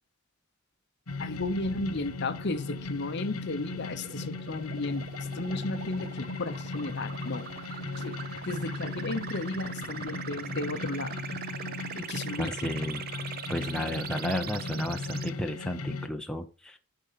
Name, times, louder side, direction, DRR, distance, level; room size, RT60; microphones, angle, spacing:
sound 1, 1.1-16.1, left 3 dB, 85° left, 1.2 m, -38 dB
sound 2, 1.1-15.3, right 8 dB, 40° right, 0.4 m, -42 dB
voice 1, 1.2-5.1 5.3-7.5 8.0-8.2 8.4-11.2 11.9-12.7, left 2 dB, 50° left, 0.9 m, -34 dB
voice 2, 12.4-13.0 13.5-16.8, left 1 dB, 5° left, 0.6 m, -33 dB
10.5 x 4.3 x 5.7 m
head